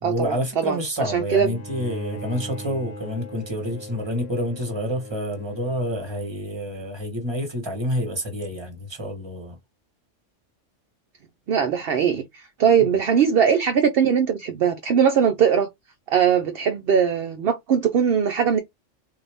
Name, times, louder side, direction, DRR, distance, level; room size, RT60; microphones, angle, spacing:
voice 1, 0.0-9.6, equal, 20° right, 1.2 m, -28 dB
voice 2, 1.1-1.6 11.5-15.7 16.1-18.6, right 7 dB, 60° right, 0.7 m, -20 dB
Bowed string instrument, 1.4-6.6, equal, 60° left, 1.3 m, -39 dB
3.9 x 2.7 x 3.4 m
omnidirectional pair, 1.3 m